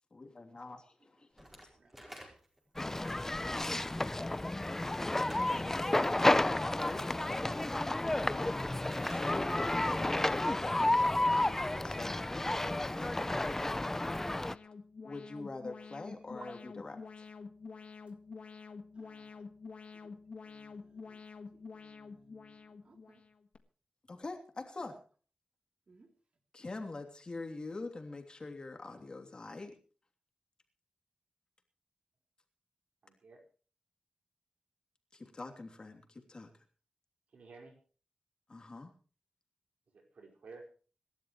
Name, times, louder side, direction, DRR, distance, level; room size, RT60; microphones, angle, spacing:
voice 1, 0.1-1.3 5.1-5.7 6.0-6.1 6.7-7.4 8.2-8.6 9.0-10.8 11.8-14.1 15.0-16.9 24.1-24.9 26.5-29.7 35.1-36.5 38.5-38.9, left 3 dB, 40° left, 5 dB, 3.0 m, -44 dB
Slam / Wood, 1.4-2.7 5.2-5.8 8.1-9.3, equal, 10° right, 4.9 m, -50 dB
voice 2, 1.7-2.3 3.2-3.5 4.2-4.6 6.9-7.1 16.4-16.6 18.9-19.4 19.9-20.2 20.4-21.2 21.5-23.2 25.9-26.1, right 3 dB, 50° right, 5 dB, 3.2 m, -60 dB
sound 1, 2.8-14.6, left 2 dB, 15° left, 0.6 m, -31 dB
Alarm, 14.3-23.6, left 4 dB, 60° left, 1.6 m, -49 dB
voice 3, 33.0-33.4 37.3-37.8 39.9-40.7, right 3 dB, 75° right, 3 dB, 5.1 m, -53 dB
26.5 x 12.5 x 3.2 m, 0.39 s
wide cardioid pair, 110°, 2 cm